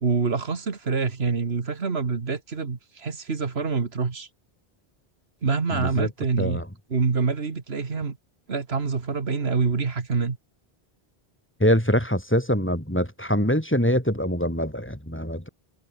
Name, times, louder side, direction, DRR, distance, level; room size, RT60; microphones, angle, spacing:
voice 1, 0.0-4.3 5.4-6.6 6.9-8.2 8.5-10.4, right 4 dB, 85° right, 2.0 m, -26 dB
voice 2, 5.7-6.1 6.4-6.6 11.6-15.5, equal, 10° left, 4.5 m, -24 dB
omnidirectional pair, 1.0 m